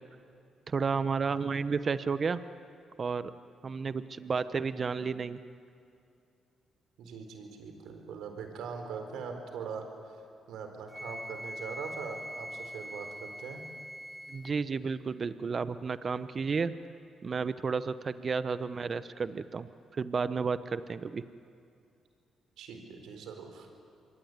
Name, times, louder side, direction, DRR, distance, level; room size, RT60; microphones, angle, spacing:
voice 1, 0.7-2.4 3.0-3.3 3.6-5.4 14.3-16.7 17.2-21.2, right 5 dB, 45° right, 13 dB, 1.0 m, -32 dB
voice 2, 7.0-9.9 10.5-13.6 22.6-23.7, right 5 dB, 75° right, 5 dB, 4.3 m, -41 dB
Wind instrument woodwind instrument, 10.9-14.6, equal, ahead, 0.9 m, -43 dB
26.5 x 22.5 x 9.7 m, 2.4 s
supercardioid pair, 55°, 0 cm